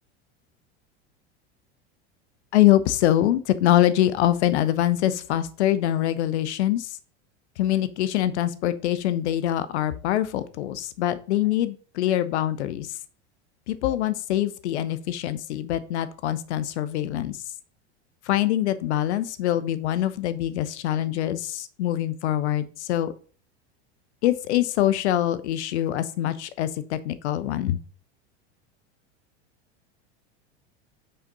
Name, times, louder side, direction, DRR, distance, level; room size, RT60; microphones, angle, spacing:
voice 1, 2.5-7.0 7.6-12.9 13.7-17.4 18.3-23.1 24.2-27.8, left 12 dB, 75° left, 14 dB, 0.8 m, -24 dB
5.6 x 5.0 x 4.1 m, 0.41 s
hypercardioid pair, 100°, 34 cm